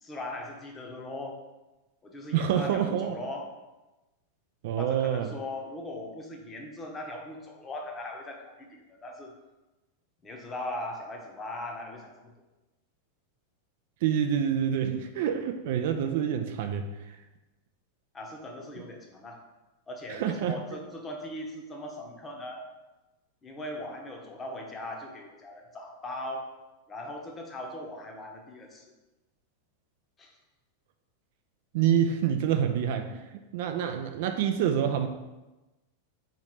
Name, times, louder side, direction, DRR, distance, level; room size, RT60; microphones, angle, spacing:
voice 1, 0.0-1.4 2.0-3.5 4.8-9.3 10.2-12.3 18.1-19.4 19.9-22.6 23.4-26.5 26.9-28.9 30.2-30.4, left 1 dB, 20° left, 1 dB, 0.8 m, -39 dB
voice 2, 2.3-3.2 4.6-5.3 14.0-16.9 18.8-18.9 20.1-20.6 31.7-35.1, right 9 dB, 50° right, 7 dB, 0.3 m, -27 dB
3.8 x 3.1 x 4.2 m, 1.1 s
figure-of-eight pair, 90°, 0 cm